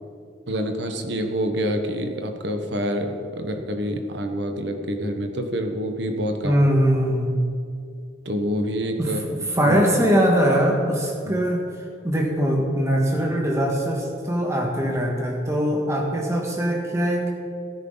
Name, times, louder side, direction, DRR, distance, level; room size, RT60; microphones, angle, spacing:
voice 1, 0.5-6.6 8.2-9.8 11.2-11.4, equal, 60° right, 5 dB, 1.3 m, -27 dB
voice 2, 6.4-7.5 9.0-9.1 9.5-11.7 12.0-17.3, equal, 15° right, 0 dB, 1.8 m, -21 dB
17.0 x 10.0 x 4.0 m, 2.4 s
head